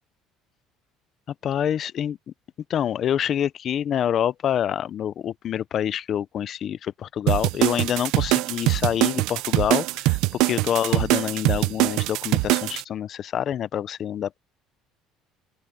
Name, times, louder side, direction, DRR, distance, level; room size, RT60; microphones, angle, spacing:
voice 1, 1.4-2.2 2.7-14.4, left 10 dB, 40° left, 0.6 m, -26 dB
sound 1, 7.3-12.8, right 19 dB, 70° right, 0.5 m, -22 dB
open air
cardioid pair, 150°, 0 cm